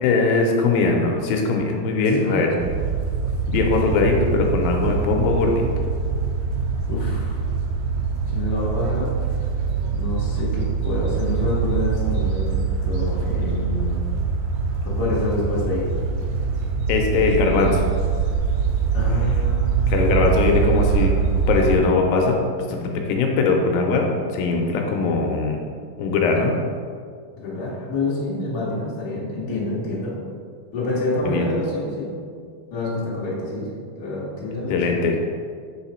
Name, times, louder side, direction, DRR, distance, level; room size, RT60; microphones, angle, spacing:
voice 1, 0.0-2.5 3.5-5.5 16.9-17.8 19.9-21.1 21.5-22.4 22.7-24.1 24.3-25.6 26.0-26.5 31.3-31.5 34.7-35.2, left 4 dB, 80° left, 1 dB, 2.3 m, -20 dB
voice 2, 2.1-2.5 6.9-7.4 8.3-9.1 9.9-12.6 12.8-14.0 14.8-15.9 18.9-20.1 27.3-30.1 30.7-32.1 32.7-33.7 34.0-35.0, left 2 dB, 60° left, -7 dB, 1.0 m, -27 dB
sound 1, 2.6-21.8, right 5 dB, 80° right, 2.2 m, -23 dB
5.2 x 4.8 x 4.3 m, 2.1 s
omnidirectional pair, 4.3 m